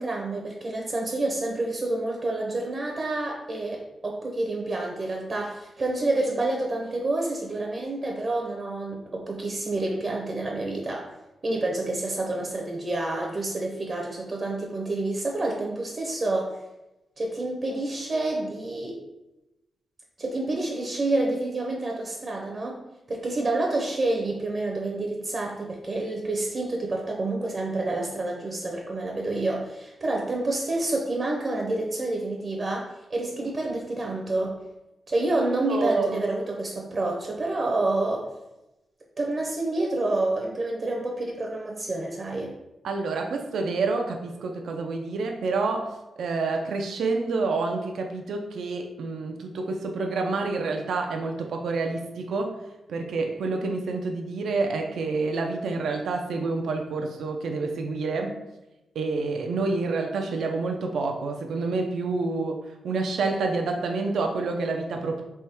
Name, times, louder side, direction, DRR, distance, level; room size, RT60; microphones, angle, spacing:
voice 1, 0.0-11.1 11.4-16.5 17.2-19.0 20.2-22.8 23.1-34.6 35.1-38.3 39.2-42.5, right 2 dB, 40° right, -1 dB, 0.7 m, -28 dB
voice 2, 35.7-36.2 42.8-52.6 52.9-58.3 58.9-65.2, right 3 dB, 80° right, 3 dB, 0.5 m, -28 dB
3.5 x 3.1 x 4.4 m, 0.96 s
wide cardioid pair, 120°, 0 cm